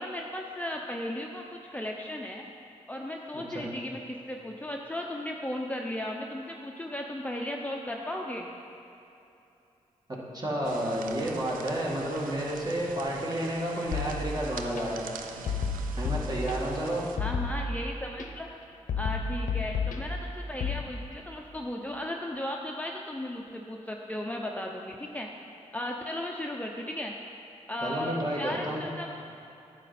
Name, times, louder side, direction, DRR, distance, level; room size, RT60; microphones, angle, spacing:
voice 1, 0.0-2.5 2.9-8.5 17.2-18.5 19.0-25.3 25.7-27.1 27.7-29.1, left 1 dB, 10° left, 0 dB, 0.7 m, -36 dB
voice 2, 3.3-3.7 10.1-15.0 16.0-17.1 27.8-28.8, right 1 dB, 30° right, -3 dB, 2.2 m, -31 dB
sound 1, 10.6-17.2, right 6 dB, 90° right, 0.5 m, -44 dB
sound 2, 13.9-14.8 15.5-16.8 17.2-18.3 18.9-20.8, left 4 dB, 75° left, 0.8 m, -32 dB
9.6 x 7.3 x 4.3 m, 2.8 s
supercardioid pair, 40°, 14 cm